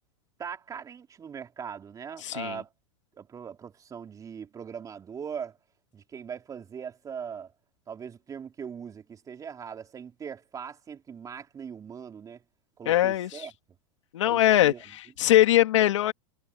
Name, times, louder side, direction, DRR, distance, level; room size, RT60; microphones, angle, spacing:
voice 1, 0.4-2.7 3.2-5.6 5.9-7.5 7.9-12.4 12.8-13.5 14.2-14.8, right 7 dB, 20° right, 3.9 m, -40 dB
voice 2, 2.2-2.6 12.8-13.5 14.1-16.1, left 13 dB, 80° left, 2.7 m, -22 dB
supercardioid pair, 125°, 15 cm